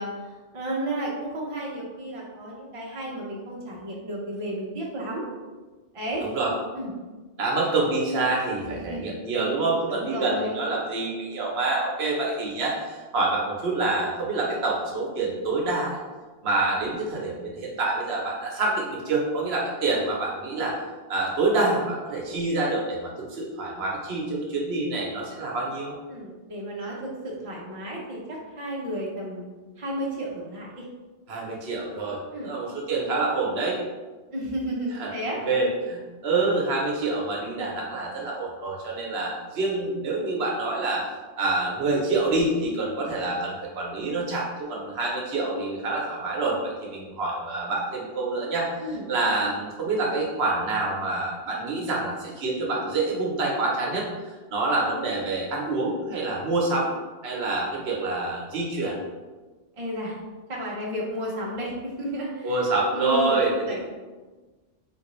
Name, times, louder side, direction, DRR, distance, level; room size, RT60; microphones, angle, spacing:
voice 1, 0.0-5.3 5.9-6.3 6.8-6.9 8.6-9.1 9.9-10.6 26.1-29.5 29.8-30.8 32.3-32.5 34.3-35.4 48.8-49.1 59.8-60.2 60.5-62.5 62.9-63.8, right 1 dB, 35° right, -4 dB, 0.7 m, -32 dB
voice 2, 6.2-6.5 7.4-16.0 16.4-20.8 21.1-26.0 31.3-33.8 34.9-41.1 41.4-56.9 57.2-59.0 62.4-63.8, right 2 dB, 70° right, -2 dB, 0.9 m, -27 dB
3.6 x 2.5 x 3.0 m, 1.3 s
omnidirectional pair, 1.1 m